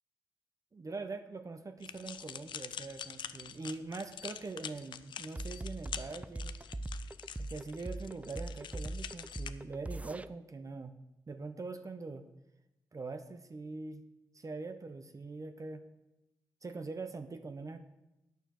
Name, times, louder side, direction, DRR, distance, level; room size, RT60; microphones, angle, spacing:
voice 1, 0.7-6.5 7.4-10.9 11.3-12.2 12.9-14.0 14.3-15.8 16.6-17.8, right 3 dB, 45° right, 8 dB, 1.1 m, -43 dB
sound 1, 1.8-9.5, left 8 dB, 75° left, 0.5 m, -45 dB
sound 2, 5.4-10.3, right 2 dB, 15° right, 0.5 m, -40 dB
9.1 x 6.6 x 6.6 m, 0.92 s
supercardioid pair, 40°, 8 cm